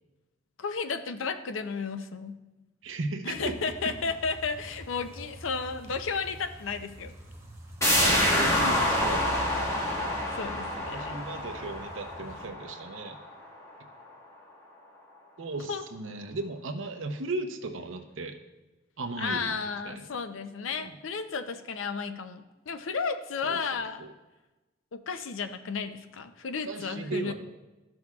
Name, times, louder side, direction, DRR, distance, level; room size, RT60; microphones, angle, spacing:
voice 1, 0.6-2.4 3.2-7.1 10.3-11.1 15.7-15.8 19.2-24.0 24.9-27.3, left 5 dB, 85° left, 9 dB, 0.6 m, -33 dB
voice 2, 2.8-3.6 8.0-9.5 10.9-13.2 15.4-18.3 19.0-19.5 19.8-20.0 20.7-21.0 23.4-23.6 24.0-24.1 26.6-27.3, right 2 dB, 85° right, 5 dB, 0.8 m, -36 dB
sound 1, 3.3-12.5, equal, 15° right, 0.9 m, -45 dB
sound 2, 7.8-13.3 13.6-13.7, left 1 dB, 15° left, 1.3 m, -27 dB
12.5 x 6.2 x 2.4 m, 1.1 s
head